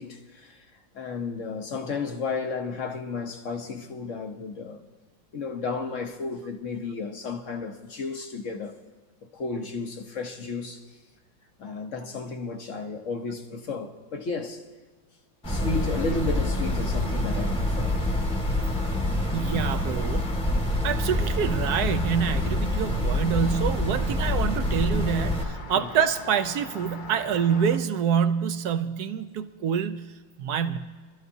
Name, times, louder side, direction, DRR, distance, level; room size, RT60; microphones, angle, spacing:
voice 1, 0.0-4.8 5.3-8.8 9.3-11.0 11.6-14.7 15.5-18.0 25.7-25.9, left 4 dB, 50° left, 1.0 m, -33 dB
Rain, 15.4-27.8, left 4 dB, 85° left, 0.4 m, -41 dB
sound 1, 15.4-25.4, left 1 dB, 5° left, 1.0 m, -26 dB
voice 2, 19.3-20.3 20.8-30.1 30.4-30.8, right 7 dB, 70° right, 1.0 m, -26 dB
24.5 x 13.5 x 2.7 m
omnidirectional pair, 2.1 m